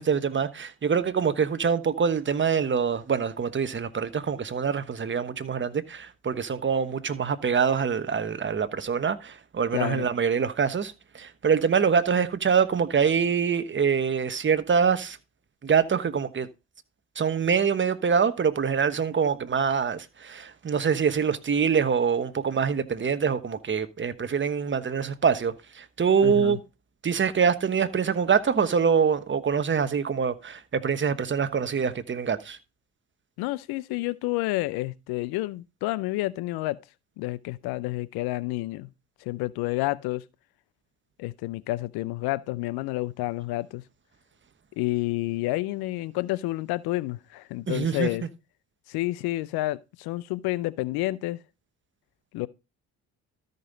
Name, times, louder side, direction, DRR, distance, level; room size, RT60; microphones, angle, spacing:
voice 1, 0.0-15.2 15.6-16.5 17.2-26.6 27.0-32.6 47.7-48.1, right 6 dB, 30° right, 1.1 m, -25 dB
voice 2, 9.7-10.1 26.2-26.6 33.4-36.8 37.2-38.9 39.2-40.2 41.2-43.8 44.8-48.3 48.9-51.4 52.3-52.5, left 18 dB, 85° left, 0.7 m, -29 dB
13.0 x 5.4 x 3.9 m
supercardioid pair, 70°, 37 cm